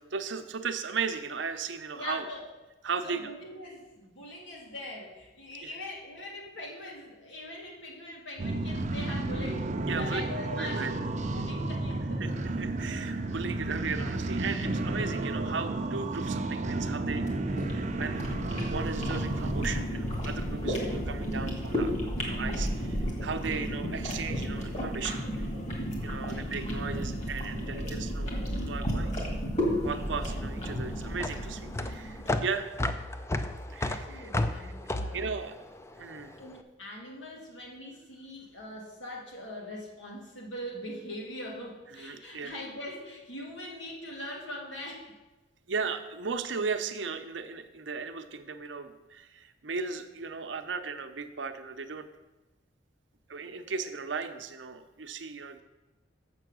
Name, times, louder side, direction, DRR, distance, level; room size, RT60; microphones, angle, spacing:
voice 1, 0.0-2.3 2.8-3.3 5.6-5.7 9.8-10.2 10.5-10.9 12.2-18.2 18.7-21.9 22.2-25.4 26.0-28.4 28.7-29.1 29.8-32.7 33.7-35.7 35.9-36.4 41.9-42.5 45.7-52.1 53.3-55.6, right 5 dB, 85° right, 8 dB, 0.7 m, -36 dB
voice 2, 1.9-2.4 3.0-12.5 26.1-26.5 33.8-35.2 36.4-45.1, left 1 dB, 85° left, -1 dB, 2.2 m, -42 dB
sound 1, 8.4-19.9, right 2 dB, 40° right, 0.6 m, -32 dB
sound 2, 17.2-32.4, equal, 40° left, 2.1 m, -33 dB
sound 3, 29.9-36.4, left 2 dB, 15° left, 0.4 m, -33 dB
7.5 x 6.9 x 6.2 m, 1.1 s
head